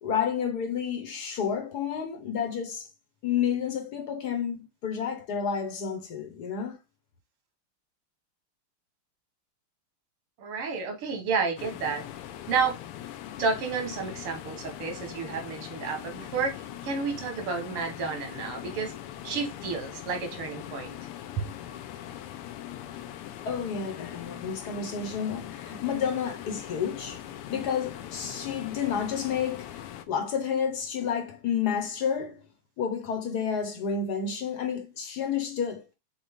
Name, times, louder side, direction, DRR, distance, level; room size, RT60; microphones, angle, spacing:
voice 1, 0.0-2.9 3.2-6.8 23.4-27.2 27.5-32.4 32.8-35.9, left 7 dB, 55° left, 1.3 m, -30 dB
voice 2, 10.4-12.0 12.5-12.7 13.4-16.5 16.8-18.9 19.2-21.0 21.4-21.5, right 5 dB, 85° right, 2.1 m, -30 dB
sound 1, 11.6-30.0, left 12 dB, 90° left, 1.5 m, -41 dB
6.2 x 2.3 x 3.5 m
omnidirectional pair, 2.4 m